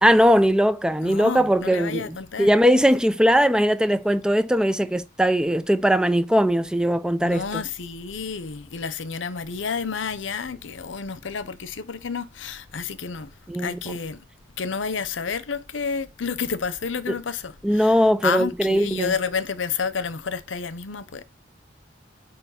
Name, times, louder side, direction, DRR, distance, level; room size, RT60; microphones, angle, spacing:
voice 1, 0.0-7.6 13.5-13.8 17.1-17.2 17.6-19.1, equal, 5° right, 0.4 m, -20 dB
voice 2, 1.0-2.5 7.2-13.3 13.6-14.2 14.6-17.9 18.2-21.2, left 5 dB, 90° left, 0.7 m, -30 dB
6.9 x 4.4 x 5.7 m
head